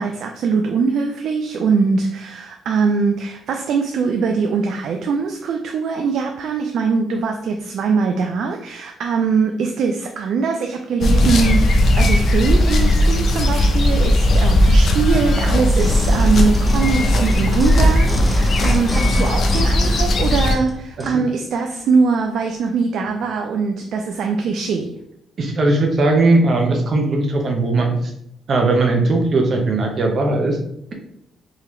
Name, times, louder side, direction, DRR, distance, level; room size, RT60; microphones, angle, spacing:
voice 1, 0.0-24.9, right 5 dB, 70° right, 4 dB, 0.3 m, -21 dB
sound 1, 11.0-20.5, left 1 dB, 60° left, 0.6 m, -16 dB
sound 2, 15.7-21.2 21.8-21.9, left 1 dB, 5° left, 0.7 m, -30 dB
voice 2, 25.4-28.1 28.5-30.6, right 2 dB, 50° right, 2 dB, 0.8 m, -18 dB
3.7 x 2.8 x 3.2 m, 0.76 s
cardioid pair, 90°, 0 cm